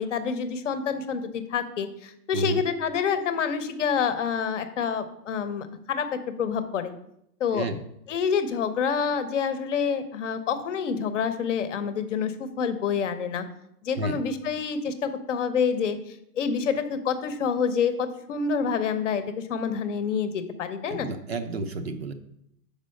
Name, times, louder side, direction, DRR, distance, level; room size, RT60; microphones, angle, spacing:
voice 1, 0.0-6.9 7.4-7.7 8.1-13.4 13.8-21.1, left 6 dB, 50° left, 10 dB, 0.8 m, -27 dB
voice 2, 2.3-2.6 7.5-7.8 13.9-14.2 20.9-22.1, right 2 dB, 40° right, 8 dB, 0.6 m, -30 dB
5.5 x 5.1 x 6.4 m, 0.76 s
hypercardioid pair, 155°, 48 cm